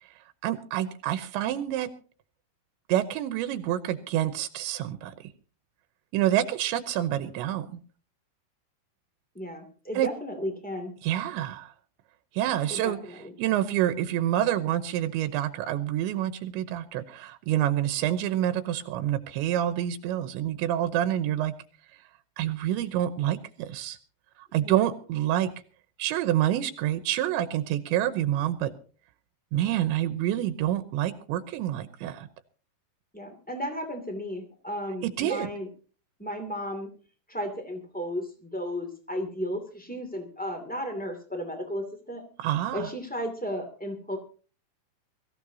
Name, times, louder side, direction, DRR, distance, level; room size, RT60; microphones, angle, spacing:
voice 1, 0.4-1.9 2.9-5.1 6.1-7.8 10.0-10.1 11.0-11.7 12.3-21.5 22.4-24.0 24.5-25.5 26.0-28.7 29.5-32.3 35.0-35.5 42.4-42.9, right 12 dB, 85° right, 11 dB, 3.1 m, -27 dB
voice 2, 9.3-10.9 12.7-13.5 24.5-24.8 33.1-35.7 36.2-36.9 37.3-42.2 42.7-44.2, equal, 10° left, 5 dB, 0.4 m, -34 dB
23.0 x 15.0 x 2.8 m, 0.39 s
omnidirectional pair, 5.2 m